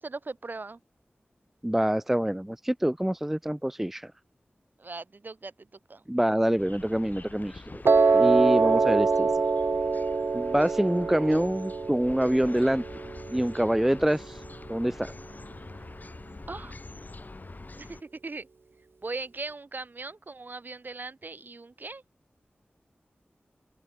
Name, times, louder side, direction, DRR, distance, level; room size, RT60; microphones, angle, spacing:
voice 1, 0.0-0.8 4.8-6.0 16.5-16.8 17.8-18.5 19.0-22.0, right 3 dB, 55° right, 2.3 m, -39 dB
voice 2, 1.6-4.1 6.1-7.8 8.1-9.3 10.3-12.8 13.3-14.4 14.7-15.1, right 1 dB, 5° right, 0.3 m, -26 dB
sound 1, 6.6-18.0, left 3 dB, 45° left, 7.2 m, -45 dB
Piano, 7.9-14.0, right 4 dB, 75° right, 2.2 m, -25 dB
open air
wide cardioid pair, 90°, 4 cm